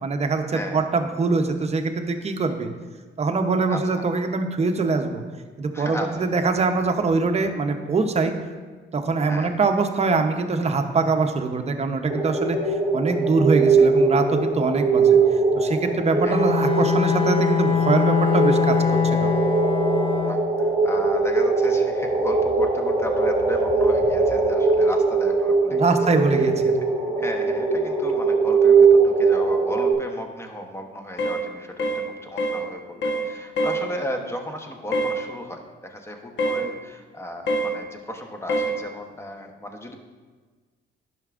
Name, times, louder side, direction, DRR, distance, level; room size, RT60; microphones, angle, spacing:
voice 1, 0.0-2.7 3.2-5.2 5.6-8.3 8.9-15.2 15.5-18.8 19.1-19.3 25.7-26.5, right 3 dB, 35° right, 6 dB, 0.7 m, -23 dB
voice 2, 0.5-0.8 3.7-4.0 5.7-6.2 9.3-9.5 16.2-16.4 20.2-26.0 27.2-40.0, equal, 10° left, 3 dB, 0.9 m, -35 dB
sound 1, 12.1-29.9, right 4 dB, 5° right, 2.0 m, -21 dB
Bowed string instrument, 16.3-20.6, left 7 dB, 30° left, 0.5 m, -23 dB
sound 2, 31.2-31.4 31.8-32.0 32.4-32.6 33.0-33.3 33.6-33.8 34.9-35.2 36.4-36.6 37.5-37.7 38.5-38.7, right 1 dB, 65° left, 1.0 m, -24 dB
10.5 x 5.9 x 2.5 m, 1.4 s
cardioid pair, 90°, 20 cm